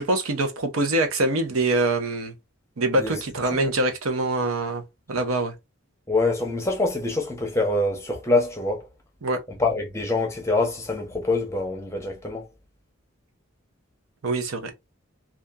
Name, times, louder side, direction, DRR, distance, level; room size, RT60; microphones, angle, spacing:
voice 1, 0.0-2.3 2.8-4.8 5.1-5.5 9.2-9.4 14.2-14.7, right 2 dB, 85° right, 0.7 m, -24 dB
voice 2, 6.1-8.9 9.5-12.5, left 2 dB, 15° left, 0.6 m, -25 dB
2.8 x 2.4 x 2.3 m
head